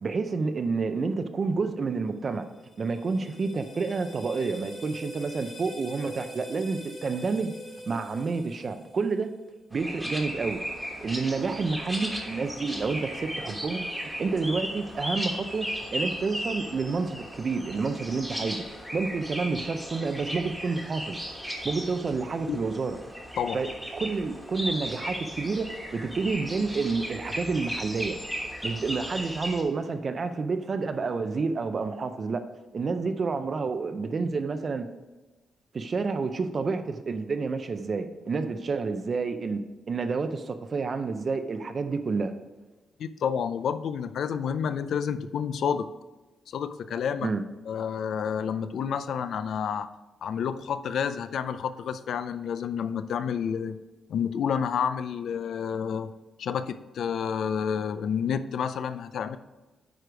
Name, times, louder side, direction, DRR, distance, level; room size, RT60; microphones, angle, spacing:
voice 1, 0.0-2.5 2.8-7.5 7.9-9.3 9.7-10.6 11.0-18.6 18.9-21.2 21.6-23.0 23.5-28.2 28.6-32.4 32.7-34.9 35.7-39.6 39.9-42.3 47.2-47.4, right 4 dB, 35° right, 9 dB, 0.5 m, -29 dB
sound 1, 2.3-9.4, left 1 dB, 30° left, 1.6 m, -44 dB
sound 2, 9.7-29.6, equal, ahead, 1.4 m, -36 dB
voice 2, 43.0-45.9 46.5-47.3 47.7-49.9 50.2-53.8 54.1-56.1 56.4-59.4, left 7 dB, 70° left, 12 dB, 0.4 m, -29 dB
9.1 x 4.8 x 5.0 m, 1.2 s
wide cardioid pair, 150°, 0 cm